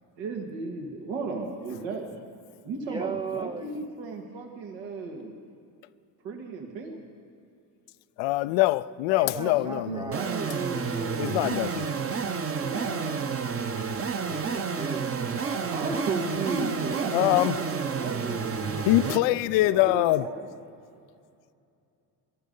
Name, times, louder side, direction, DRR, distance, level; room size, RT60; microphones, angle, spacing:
voice 1, 0.2-2.2 2.6-5.4 6.2-7.0 9.2-11.5 12.6-13.7 15.6-20.8, right 3 dB, 80° right, 1.9 m, -35 dB
voice 2, 2.7-3.7 9.1-10.9 14.2-16.1, right 4 dB, 10° right, 0.4 m, -38 dB
voice 3, 8.2-10.1 11.2-11.9 17.1-17.5 18.9-20.2, left 18 dB, 75° left, 0.5 m, -23 dB
sound 1, 10.1-19.2, right 5 dB, 30° right, 0.9 m, -30 dB
19.0 x 12.5 x 5.4 m
supercardioid pair, 75°, 45 cm